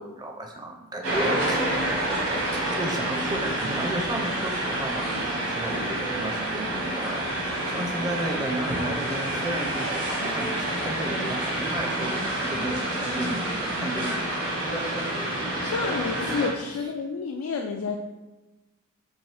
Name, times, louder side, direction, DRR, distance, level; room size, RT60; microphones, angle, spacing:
voice 1, 0.0-1.8 2.5-5.1 5.5-7.3 7.6-15.0, right 1 dB, 20° right, 3 dB, 0.4 m, -33 dB
sound 1, 1.0-16.5, right 1 dB, 80° right, 1.2 m, -28 dB
voice 2, 15.6-18.0, left 5 dB, 90° left, 2 dB, 0.4 m, -29 dB
5.5 x 2.6 x 3.2 m, 1.1 s
head